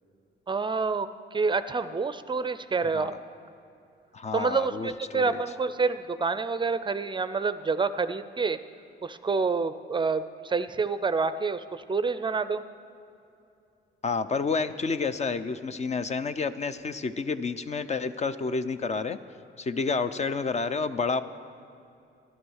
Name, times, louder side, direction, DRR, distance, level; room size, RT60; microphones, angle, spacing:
voice 1, 0.5-3.1 4.3-8.6 9.0-12.6, right 4 dB, 25° right, 12 dB, 0.5 m, -28 dB
voice 2, 4.1-5.4 14.0-19.2 19.6-21.2, left 4 dB, 35° left, 12 dB, 0.5 m, -29 dB
13.5 x 11.0 x 6.4 m, 2.6 s
cardioid pair, 90°, 20 cm